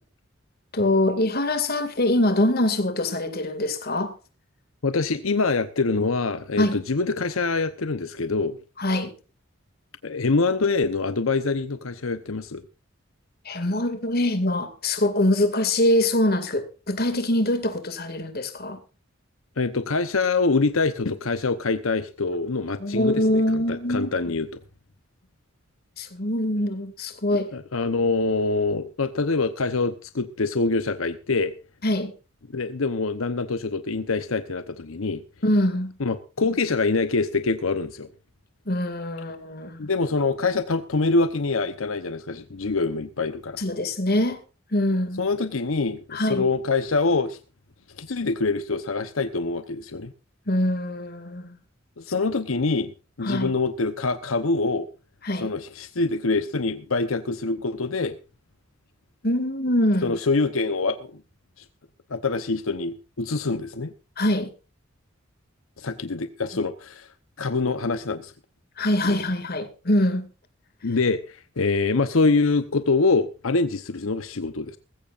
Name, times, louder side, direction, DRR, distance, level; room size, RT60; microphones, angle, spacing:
voice 1, 0.7-4.1 6.6-6.8 8.8-9.1 13.5-18.8 22.8-24.3 26.0-27.5 31.8-32.1 35.4-35.9 38.7-39.9 43.6-44.4 44.7-45.2 46.1-46.5 50.5-51.6 53.2-53.5 55.2-55.5 59.2-60.1 64.2-64.5 68.8-70.3, left 1 dB, 50° left, 2.3 m, -24 dB
voice 2, 4.8-8.6 10.0-12.6 19.6-24.6 27.5-31.5 32.5-35.2 36.0-38.1 39.8-43.6 45.2-47.4 48.0-50.1 52.0-52.9 53.2-54.9 55.4-58.2 60.0-61.2 61.6-61.7 62.1-63.9 65.8-67.1 67.4-68.3 69.0-69.2 70.8-74.8, left 3 dB, 90° left, 0.9 m, -25 dB
20.0 x 15.5 x 2.5 m
head